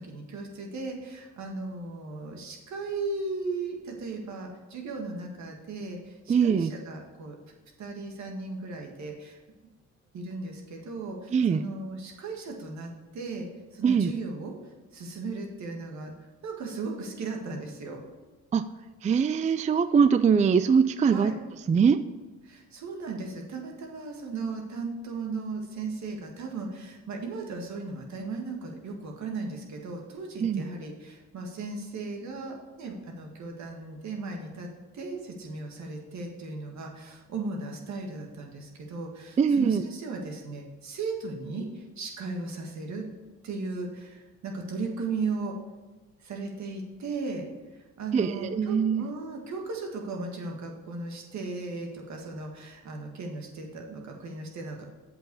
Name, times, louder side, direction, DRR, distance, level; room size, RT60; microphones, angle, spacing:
voice 1, 0.0-9.4 10.1-14.5 14.9-16.1 16.4-18.0 21.1-21.4 22.4-34.7 34.9-43.1 43.4-45.5 46.2-47.5 48.0-54.8, right 3 dB, 65° right, 1 dB, 1.9 m, -36 dB
voice 2, 6.3-6.7 11.3-11.6 13.8-14.1 18.5-18.6 19.0-21.3 21.7-22.0 30.4-30.6 39.4-39.8 48.1-49.0, right 6 dB, 25° right, 12 dB, 0.4 m, -22 dB
7.7 x 5.7 x 6.9 m, 1.2 s
cardioid pair, 90°, 30 cm